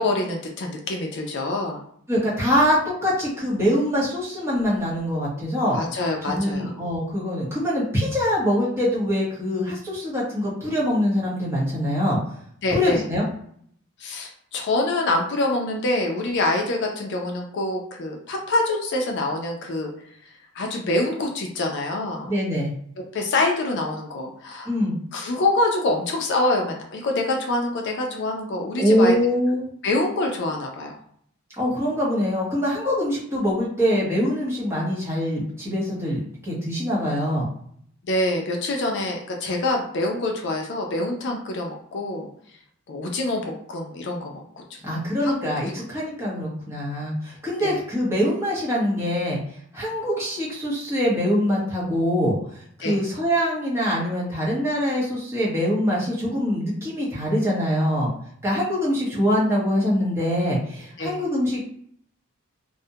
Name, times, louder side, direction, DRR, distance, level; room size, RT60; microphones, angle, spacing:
voice 1, 0.0-1.8 5.7-6.7 12.6-13.0 14.0-19.9 20.6-22.3 23.1-24.7 25.1-29.2 29.8-31.0 38.0-42.3 42.9-44.4 45.3-45.4 47.6-47.8 52.8-53.0 61.0-61.2, left 2 dB, 55° left, 1 dB, 0.4 m, -25 dB
voice 2, 2.1-5.8 6.3-12.2 12.7-13.3 22.3-22.7 24.6-24.9 28.8-29.6 31.6-37.5 44.8-49.4 49.7-58.1 58.4-61.6, equal, 10° right, -6 dB, 0.7 m, -24 dB
2.3 x 2.1 x 2.7 m, 0.64 s
head